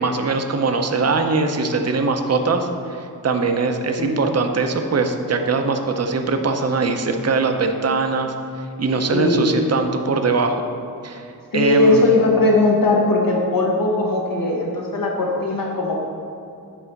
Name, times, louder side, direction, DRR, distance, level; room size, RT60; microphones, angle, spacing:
voice 1, 0.0-8.3 8.8-10.6 11.0-11.2 11.5-12.0, right 4 dB, 45° right, 5 dB, 0.6 m, -21 dB
voice 2, 9.1-9.6 11.5-16.0, left 2 dB, 65° left, -2 dB, 0.8 m, -19 dB
8.3 x 3.3 x 5.2 m, 2.6 s
wide cardioid pair, 70°, 37 cm